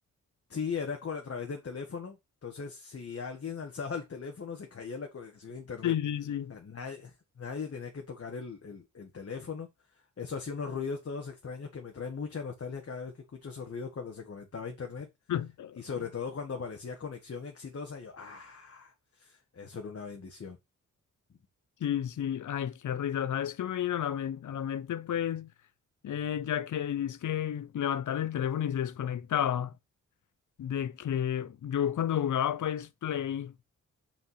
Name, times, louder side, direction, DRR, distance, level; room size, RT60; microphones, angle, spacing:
voice 1, 0.5-2.2 2.4-5.9 6.5-9.7 10.2-15.1 15.8-20.6, left 5 dB, 45° left, 1.7 m, -39 dB
voice 2, 5.8-6.5 15.3-15.8 21.8-25.5 26.0-29.7 30.6-33.5, left 10 dB, 65° left, 0.7 m, -31 dB
5.7 x 5.3 x 5.7 m
cardioid pair, 60°, 32 cm